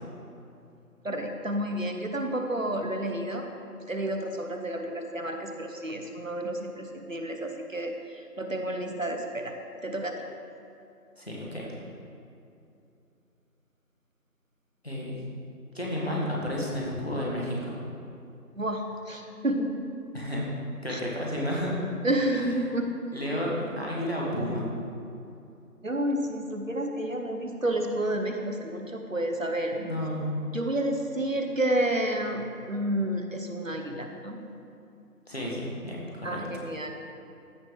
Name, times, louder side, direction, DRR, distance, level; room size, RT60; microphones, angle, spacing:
voice 1, 1.0-3.5 3.9-9.5 9.8-10.2 11.5-11.9 18.5-19.8 20.9-21.0 22.0-23.2 25.8-29.8 30.5-34.4 36.2-36.9, right 1 dB, 55° right, 4 dB, 0.8 m, -30 dB
voice 2, 11.2-11.7 14.8-15.2 15.7-17.8 20.1-20.4 20.8-21.7 23.1-24.6 29.8-30.3 35.3-36.4, equal, 40° left, -4 dB, 1.6 m, -31 dB
14.5 x 5.3 x 3.2 m, 2.7 s
figure-of-eight pair, 175°, 47 cm